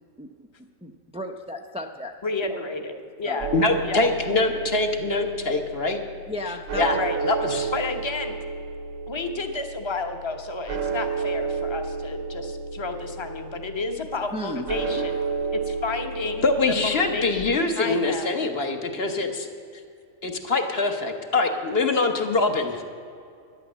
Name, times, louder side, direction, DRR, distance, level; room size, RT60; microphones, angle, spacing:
voice 1, 0.8-2.1 2.4-2.5 3.3-3.4 6.3-7.0 14.3-14.7, left 1 dB, 10° right, 3 dB, 0.4 m, -34 dB
voice 2, 2.2-3.5 3.8-4.1 7.0-7.2 7.7-8.3 9.1-15.1 15.5-18.3, left 3 dB, 25° left, 6 dB, 0.9 m, -31 dB
sound 1, 3.4-17.4, right 4 dB, 70° right, 1.4 m, -32 dB
voice 3, 3.5-6.0 6.7-7.7 14.9-15.0 16.4-19.5 20.2-22.8, left 3 dB, 50° left, 4 dB, 1.3 m, -24 dB
12.0 x 9.8 x 7.3 m, 2.4 s
omnidirectional pair, 1.4 m